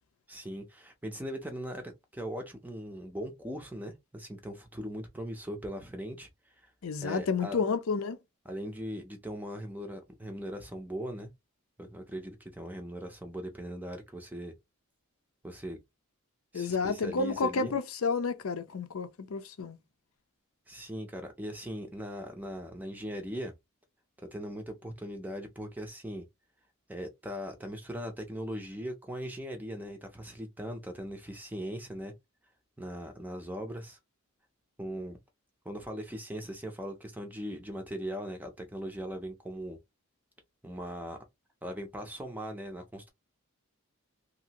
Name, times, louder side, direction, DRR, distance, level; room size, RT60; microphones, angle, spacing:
voice 1, 0.3-6.3 6.6-6.7 7.0-7.6 8.4-11.3 11.8-14.5 15.4-15.8 16.5-17.7 20.7-23.5 24.2-26.3 26.9-32.1 32.8-34.0 34.8-35.2 35.6-39.8 40.6-41.2 41.6-43.1, equal, 10° right, 0.5 m, -39 dB
voice 2, 6.8-8.2 16.5-19.8, left 4 dB, 75° left, 0.5 m, -30 dB
2.8 x 2.6 x 2.8 m
head